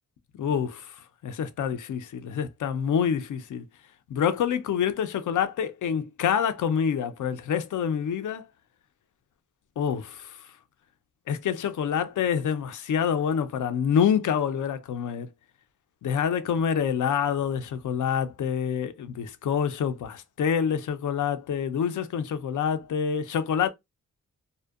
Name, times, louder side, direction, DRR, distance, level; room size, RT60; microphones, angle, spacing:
voice 1, 0.4-0.9 1.2-3.6 4.1-8.5 9.8-10.3 11.3-15.3 16.0-23.7, left 7 dB, 70° left, 0.5 m, -27 dB
2.6 x 2.1 x 2.3 m
wide cardioid pair, 100°, 32 cm